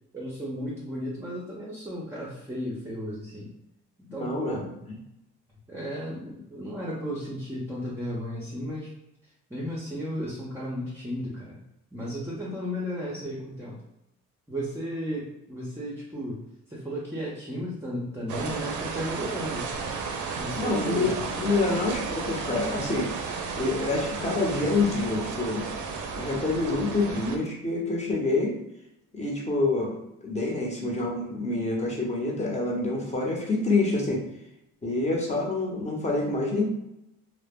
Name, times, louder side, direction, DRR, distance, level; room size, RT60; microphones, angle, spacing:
voice 1, 0.1-3.5 4.1-4.7 5.7-8.9 9.5-11.6 11.9-13.8 14.5-16.4 16.7-19.7 20.3-21.2 21.7-21.8, equal, 10° right, -5 dB, 0.6 m, -34 dB
voice 2, 4.2-4.6 20.6-23.1 23.6-25.6 26.2-28.6 29.1-34.2 34.8-36.7, left 2 dB, 20° left, -2 dB, 0.8 m, -27 dB
sound 1, 18.3-27.4, right 5 dB, 75° right, 0.5 m, -33 dB
2.1 x 2.0 x 3.5 m, 0.86 s
cardioid pair, 90°, 30 cm